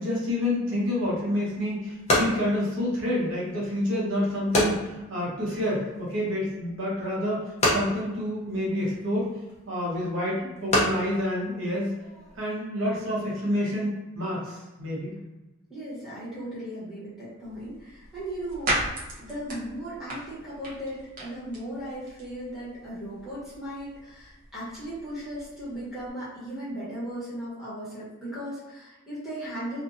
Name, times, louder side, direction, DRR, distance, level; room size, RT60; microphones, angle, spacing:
voice 1, 0.0-7.4 7.7-9.3 9.7-11.9 12.3-15.1, left 1 dB, 65° right, -6 dB, 1.0 m, -28 dB
sound 1, 1.0-12.4, left 1 dB, 30° left, 0.7 m, -31 dB
voice 2, 15.7-29.8, right 1 dB, ahead, -12 dB, 1.2 m, -37 dB
sound 2, 17.4-26.1, right 1 dB, 40° right, 0.8 m, -37 dB
2.7 x 2.5 x 2.6 m, 1.1 s
head